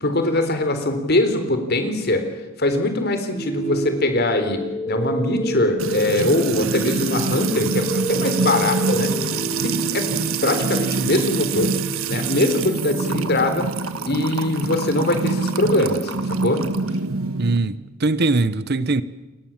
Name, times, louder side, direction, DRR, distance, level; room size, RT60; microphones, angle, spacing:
voice 1, 0.0-2.2 2.6-9.1 9.6-10.1 10.4-11.7 12.1-13.7 14.1-16.6, left 1 dB, 50° left, 3.9 m, -22 dB
sound 1, 3.3-13.3, right 1 dB, 10° left, 7.7 m, -30 dB
Music / Water tap faucet / Trickle dribble, 5.8-17.6, right 4 dB, 90° right, 1.6 m, -25 dB
voice 2, 17.4-19.0, right 3 dB, 50° right, 1.0 m, -21 dB
29.0 x 21.5 x 7.4 m
head